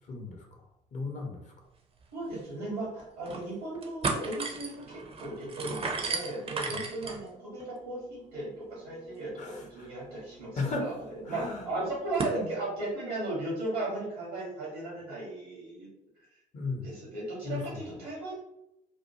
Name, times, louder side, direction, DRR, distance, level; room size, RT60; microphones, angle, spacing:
voice 1, 0.1-0.6 0.9-1.5 6.7-6.8 9.4-9.9 10.6-11.0 11.3-11.6 16.5-17.0 17.4-17.8, left 3 dB, 40° left, 1 dB, 0.8 m, -36 dB
sound 1, 2.0-2.1 2.4-2.5 3.0-3.4 3.7-12.4, right 4 dB, 30° right, 0.5 m, -38 dB
voice 2, 2.1-10.9 11.3-15.9 16.8-18.3, right 2 dB, 85° right, -6 dB, 1.0 m, -36 dB
2.5 x 2.2 x 2.7 m, 0.87 s
figure-of-eight pair, 50°, 19 cm